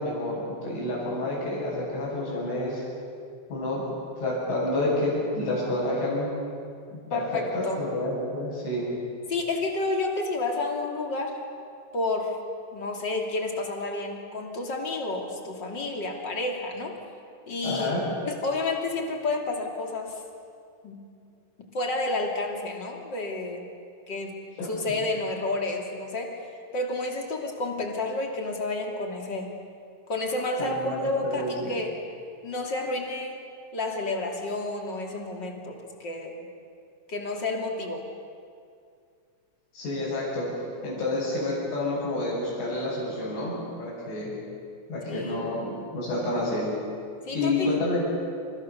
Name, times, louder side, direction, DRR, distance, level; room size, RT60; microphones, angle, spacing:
voice 1, 0.0-2.8 3.5-3.9 4.2-6.3 7.1-8.9 17.6-18.0 24.6-25.0 30.6-31.7 39.7-44.3 44.9-46.7 47.3-48.0, left 1 dB, 65° left, -10 dB, 9.5 m, -29 dB
voice 2, 7.1-7.8 9.3-11.4 11.9-12.4 12.7-16.9 17.5-20.1 20.8-21.0 21.7-23.6 24.1-24.4 24.7-26.4 26.7-29.5 30.1-31.9 32.4-33.4 33.7-36.5 37.1-38.0 45.1-45.5 47.3-47.7, left 2 dB, 30° left, 1 dB, 2.3 m, -30 dB
29.0 x 28.5 x 6.9 m, 2.4 s
omnidirectional pair, 6.0 m